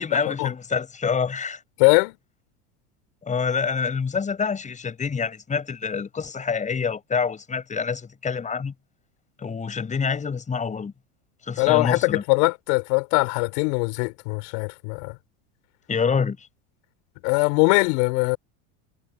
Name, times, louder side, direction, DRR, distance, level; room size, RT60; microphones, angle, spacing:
voice 1, 0.0-1.6 3.2-8.7 9.4-10.9 11.5-12.2 15.9-16.5, left 5 dB, 20° left, 7.6 m, -26 dB
voice 2, 1.8-2.2 11.6-15.1 17.2-18.4, left 34 dB, 65° left, 5.4 m, -21 dB
supercardioid pair, 125°, 36 cm